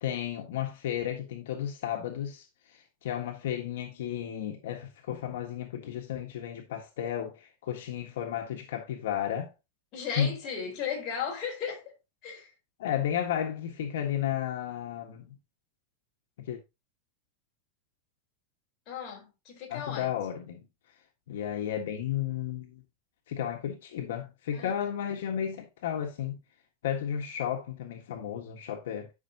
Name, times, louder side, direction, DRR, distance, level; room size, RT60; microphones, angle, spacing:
voice 1, 0.0-9.5 10.1-10.4 12.8-15.3 16.5-16.6 19.7-20.6 21.3-22.8 23.3-26.4 26.8-29.1, left 10 dB, 70° left, 1.5 m, -33 dB
voice 2, 9.9-12.0 12.2-12.5 18.9-20.1 24.5-24.7, left 7 dB, 25° left, 4.5 m, -36 dB
11.5 x 5.8 x 2.9 m
supercardioid pair, 175°, 0 cm